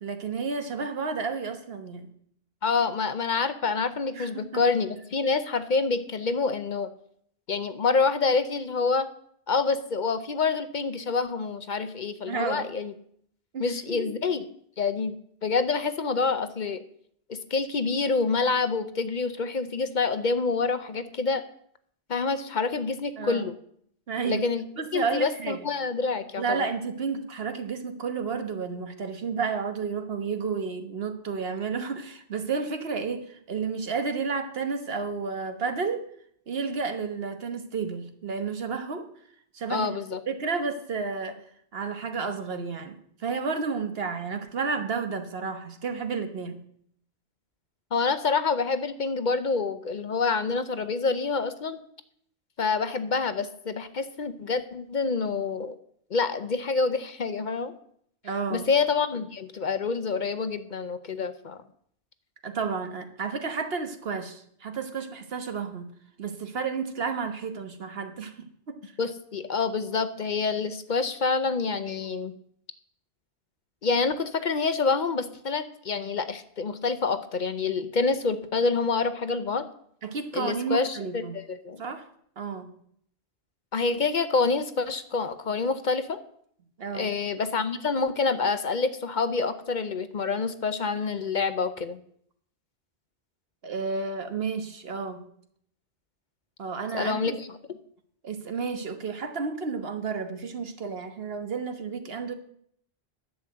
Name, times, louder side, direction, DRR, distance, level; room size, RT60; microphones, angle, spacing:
voice 1, 0.0-2.1 4.1-4.6 12.3-12.7 13.5-14.1 23.2-23.5 24.1-24.4 24.8-25.7 26.4-36.0 36.5-39.1 39.5-40.0 40.3-41.4 41.7-42.9 43.2-46.6 58.2-58.7 62.4-65.9 66.2-68.9 80.0-81.4 81.8-82.1 82.4-82.7 86.8-87.1 93.6-95.2 96.6-97.4 98.2-102.4, right 5 dB, 70° right, 7 dB, 1.4 m, -31 dB
voice 2, 2.6-6.9 7.5-9.1 9.5-12.9 13.6-14.4 14.8-15.2 15.4-16.8 17.3-21.4 22.1-23.5 24.2-24.6 24.9-26.7 39.7-40.2 47.9-51.8 52.6-55.8 56.1-57.7 58.5-61.6 69.0-72.3 73.8-79.7 80.3-81.8 83.7-86.2 86.9-92.0 96.9-97.5, left 4 dB, 50° left, 11 dB, 0.8 m, -27 dB
11.0 x 6.9 x 7.8 m, 0.67 s
omnidirectional pair, 1.1 m